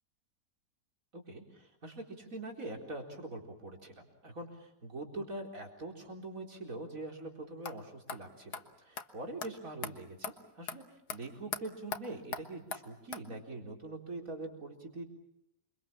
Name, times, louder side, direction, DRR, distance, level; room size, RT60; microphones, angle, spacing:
voice 1, 1.1-10.8 11.1-15.0, right 2 dB, 50° right, 2 dB, 4.5 m, -43 dB
sound 1, 7.6-7.8 8.1-8.2 8.5-8.6 9.0-9.1 9.4-9.5 9.8-9.9 10.2-10.3 10.7-10.8 11.1-11.2 11.5-11.6 11.9-12.0 12.3-12.4 12.7-12.8 13.1-13.2, left 6 dB, 70° left, 2.0 m, -38 dB
28.0 x 24.0 x 7.3 m, 0.81 s
omnidirectional pair, 1.8 m